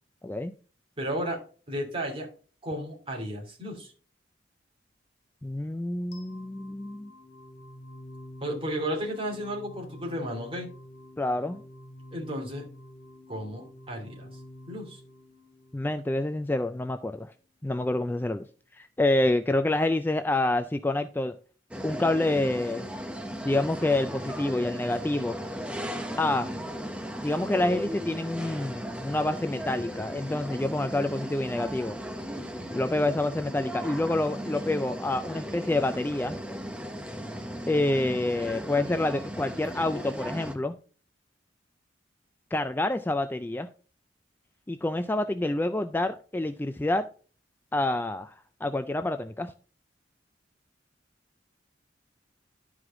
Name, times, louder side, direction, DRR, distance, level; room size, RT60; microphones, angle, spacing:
voice 1, 0.2-0.5 5.4-7.1 11.2-11.6 15.7-17.3 17.6-18.5 18.7-21.4 21.8-22.9 23.4-25.4 26.2-26.5 27.2-32.0 32.7-36.4 37.7-40.8 42.5-43.7 44.7-47.1 47.7-48.3 48.6-49.5, left 2 dB, 10° left, 0.3 m, -27 dB
voice 2, 1.0-1.4 1.7-2.3 2.6-3.9 8.4-10.7 12.1-12.6 13.3-14.3 14.7-15.0, equal, 30° right, 2.8 m, -33 dB
sound 1, 6.1-17.1, left 1 dB, 60° left, 1.8 m, -48 dB
sound 2, 21.7-40.5, equal, 5° right, 1.0 m, -36 dB
11.0 x 4.8 x 3.7 m
head